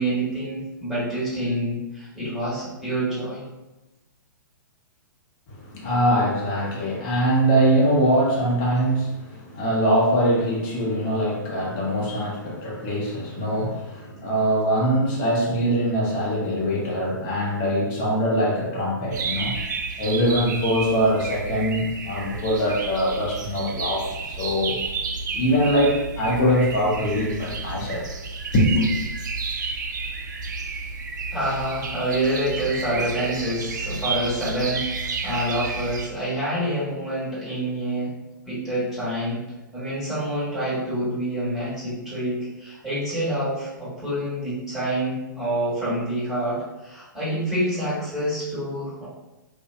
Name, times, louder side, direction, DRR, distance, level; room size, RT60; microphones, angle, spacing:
voice 1, 0.0-3.5 31.3-38.2 38.5-39.4 39.7-49.1, right 1 dB, 5° right, -10 dB, 1.3 m, -27 dB
voice 2, 5.5-19.6 20.0-24.8 25.3-28.1 28.5-28.9, equal, 35° left, -4 dB, 0.8 m, -22 dB
sound 1, 19.1-36.1, right 4 dB, 65° right, 0.4 m, -31 dB
2.4 x 2.1 x 2.5 m, 1.0 s
figure-of-eight pair, 115°, 11 cm